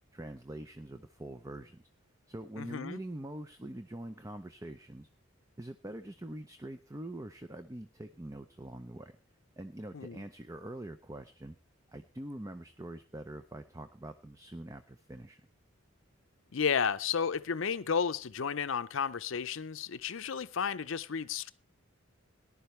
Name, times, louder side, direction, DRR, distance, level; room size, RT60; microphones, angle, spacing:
voice 1, 0.1-1.8 2.3-5.1 5.6-9.1 9.6-11.6 11.9-15.4, right 1 dB, 15° right, 0.6 m, -44 dB
voice 2, 2.6-3.0 9.9-10.2 16.5-21.5, left 6 dB, 70° left, 0.6 m, -32 dB
18.5 x 11.5 x 3.2 m
head